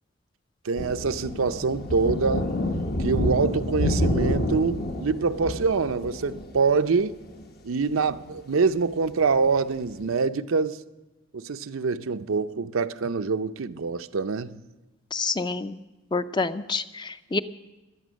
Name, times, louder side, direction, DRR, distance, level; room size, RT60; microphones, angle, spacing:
voice 1, 0.6-2.5 3.0-7.2 7.6-10.8 11.3-14.6, right 4 dB, 85° right, 0.6 m, -25 dB
sound 1, 0.8-7.0 7.2-7.4 8.0-8.4 8.9-9.0 10.0-10.1, left 1 dB, 50° left, 1.0 m, -28 dB
voice 2, 15.1-15.8 16.1-17.4, left 4 dB, 20° left, 0.5 m, -28 dB
17.5 x 12.0 x 6.3 m
head